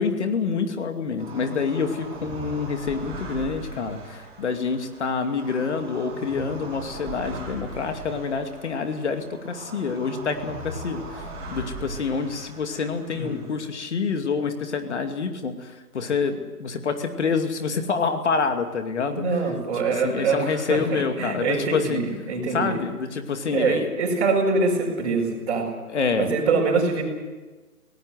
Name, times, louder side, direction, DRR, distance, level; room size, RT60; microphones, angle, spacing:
voice 1, 0.0-11.2 11.5-19.2 20.0-22.0 22.5-23.9 25.9-26.3, left 5 dB, 45° left, 6 dB, 2.6 m, -27 dB
sound 1, 1.2-13.6, right 2 dB, 10° right, 6.6 m, -39 dB
voice 2, 13.1-13.5 19.2-22.8 23.5-25.7 26.2-27.0, right 4 dB, 35° right, -5 dB, 5.5 m, -24 dB
23.5 x 18.5 x 8.1 m, 1.3 s
figure-of-eight pair, 155°, 46 cm